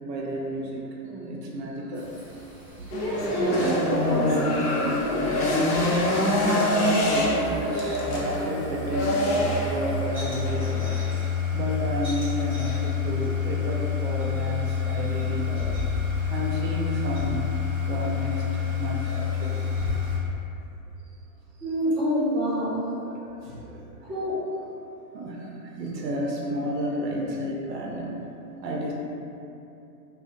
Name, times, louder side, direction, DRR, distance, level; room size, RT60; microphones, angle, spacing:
voice 1, 0.0-2.4 2.8-2.9 6.0-6.1 6.5-10.9 11.5-15.7 16.3-17.5 17.8-19.7 23.0-24.1 25.1-28.1 28.6-28.9, right 1 dB, 75° right, -2 dB, 0.6 m, -32 dB
sound 1, 1.9-20.2, left 6 dB, 15° left, 1.1 m, -30 dB
sound 2, 2.9-11.0, left 1 dB, 65° left, 0.7 m, -25 dB
voice 2, 2.9-4.5 4.8-5.2 21.6-22.9 23.4-23.6 24.1-24.4, equal, 15° right, -13 dB, 1.1 m, -27 dB
3.2 x 2.3 x 2.5 m, 2.8 s
hypercardioid pair, 170°, 49 cm